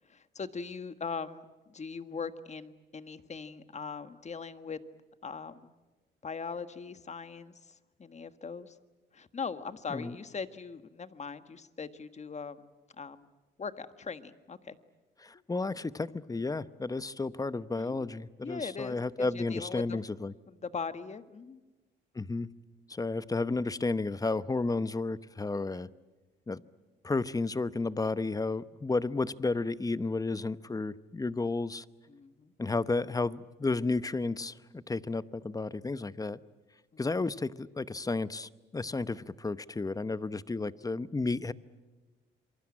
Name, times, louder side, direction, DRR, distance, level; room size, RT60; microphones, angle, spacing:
voice 1, 0.0-4.8 5.2-5.7 6.2-8.8 9.1-12.7 13.0-13.3 13.6-14.8 17.8-18.1 18.4-20.0 20.5-21.6 32.1-32.5 36.9-37.0, left 5 dB, 35° left, 11 dB, 1.5 m, -40 dB
voice 2, 15.2-20.3 22.1-22.5 22.9-25.9 26.5-26.6 27.0-31.8 32.6-36.4 37.0-41.5, left 3 dB, 20° left, 16 dB, 0.9 m, -32 dB
27.5 x 23.5 x 8.7 m, 1.2 s
cardioid pair, 90°, 20 cm